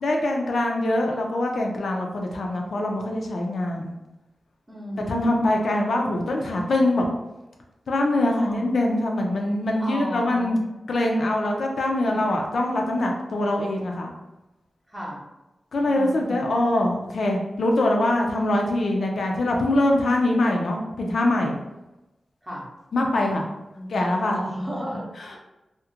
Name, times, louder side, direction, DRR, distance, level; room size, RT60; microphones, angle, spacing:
voice 1, 0.0-3.9 5.0-7.1 7.9-10.6 10.9-14.1 15.7-21.6 22.9-23.5 23.9-24.4, left 1 dB, 70° left, 1 dB, 0.4 m, -23 dB
voice 2, 4.7-5.5 8.1-8.7 9.8-10.6 11.9-12.2 14.9-15.2 15.8-16.5 22.4-22.7 23.7-23.9 24.3-25.4, equal, 10° right, -4 dB, 0.6 m, -34 dB
2.4 x 2.1 x 2.8 m, 0.97 s
wide cardioid pair, 170°, 0 cm